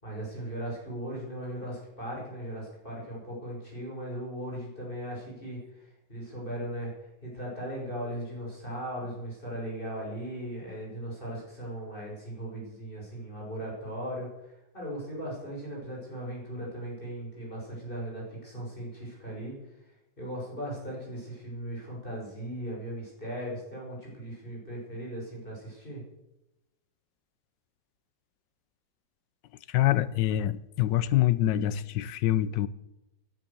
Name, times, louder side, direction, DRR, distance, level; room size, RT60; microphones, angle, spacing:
voice 1, 0.0-26.0, right 1 dB, 30° left, 6.2 m, -38 dB
voice 2, 29.7-32.7, left 13 dB, 90° left, 1.4 m, -25 dB
15.0 x 10.5 x 7.0 m
omnidirectional pair, 1.9 m